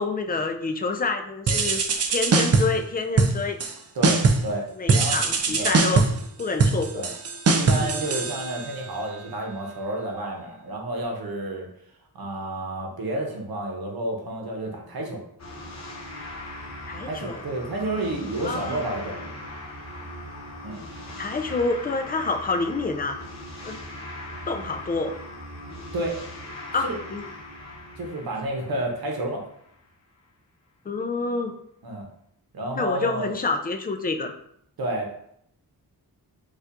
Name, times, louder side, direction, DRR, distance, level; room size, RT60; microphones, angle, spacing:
voice 1, 0.0-1.8 2.1-3.6 4.8-6.1 6.4-7.1 7.7-7.9 16.9-17.4 18.4-18.8 21.2-23.2 23.6-23.8 24.5-25.2 26.7-27.2 30.9-31.6 32.7-34.3, left 3 dB, 25° left, 5 dB, 0.4 m, -27 dB
sound 1, 1.5-2.8 3.2-3.7 4.0-4.5 4.9-8.9, right 4 dB, 40° right, 0.5 m, -22 dB
voice 2, 3.9-4.7 4.9-5.2 5.6-5.8 6.9-7.1 7.5-11.7 12.1-15.2 17.0-19.3 20.6-20.8 25.9-26.2 26.8-27.0 28.0-29.4 31.8-32.1 32.5-33.3 34.8-35.1, right 1 dB, 65° right, 1 dB, 0.8 m, -30 dB
sound 2, 15.4-29.7, left 1 dB, 40° left, 0.9 m, -40 dB
4.3 x 2.4 x 2.5 m, 0.69 s
cardioid pair, 75°, 40 cm